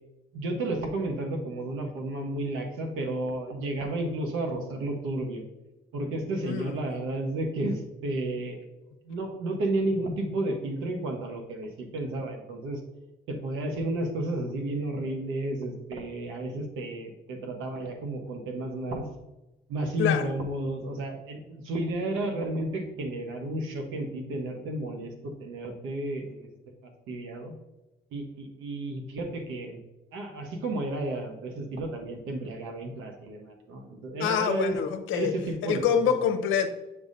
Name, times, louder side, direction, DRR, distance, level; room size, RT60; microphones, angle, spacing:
voice 1, 0.3-5.4 5.9-8.6 9.0-12.8 13.3-19.1 19.7-26.5 27.1-27.5 28.1-29.8 30.1-34.7 35.1-36.0, right 1 dB, 85° right, 3 dB, 1.2 m, -32 dB
voice 2, 6.4-6.8 20.0-20.3 34.2-35.3 35.6-36.7, left 7 dB, 80° left, 8 dB, 0.7 m, -26 dB
7.9 x 5.6 x 2.7 m, 0.99 s
cardioid pair, 90°, 20 cm